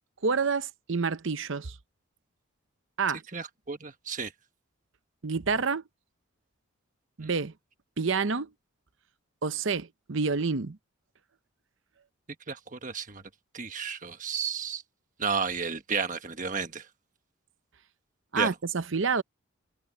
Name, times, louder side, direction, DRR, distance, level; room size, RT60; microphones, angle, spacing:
voice 1, 0.2-1.8 3.0-3.2 5.2-5.8 7.2-7.5 8.0-8.5 9.4-10.8 18.3-19.2, right 5 dB, 60° right, 0.8 m, -28 dB
voice 2, 3.3-4.3 7.2-7.3 12.5-13.2 13.5-14.8 15.2-16.9 18.3-18.5, right 5 dB, 35° right, 1.4 m, -32 dB
head